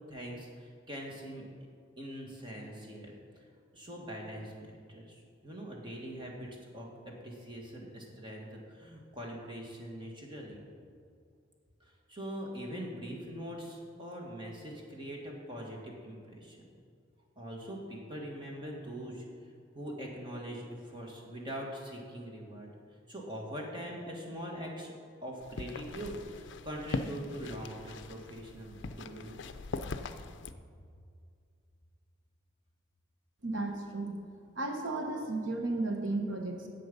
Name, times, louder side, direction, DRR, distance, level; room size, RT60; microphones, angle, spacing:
voice 1, 0.1-1.5 2.0-3.1 3.7-10.6 11.8-16.6 17.4-19.2 19.7-22.7 23.1-24.9 25.2-29.4, equal, 25° right, -1 dB, 1.7 m, -42 dB
sound 1, 25.4-30.5, left 3 dB, 60° left, 0.4 m, -41 dB
voice 2, 33.4-34.2 34.5-36.7, right 2 dB, 75° right, 3 dB, 1.2 m, -34 dB
10.5 x 7.8 x 5.3 m, 2.2 s
head